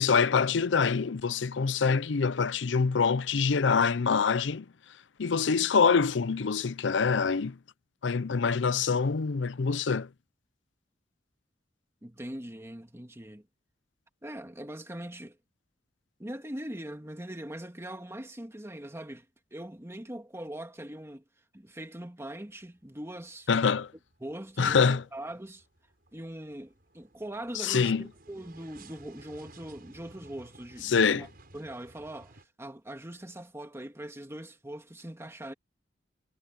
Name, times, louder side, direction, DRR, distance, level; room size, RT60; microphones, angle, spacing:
voice 1, 0.0-4.7 5.2-7.6 8.0-10.1 23.5-23.9 24.6-25.0 27.5-28.1 30.8-31.3, left 5 dB, 70° left, 0.6 m, -25 dB
voice 2, 12.0-13.4 14.2-15.4 16.2-19.3 19.5-21.2 21.5-23.5 24.2-25.7 26.1-31.3 31.5-35.5, right 1 dB, 15° right, 1.9 m, -41 dB
sound 1, 22.5-22.9 23.3-32.5, right 2 dB, 55° right, 5.8 m, -55 dB
head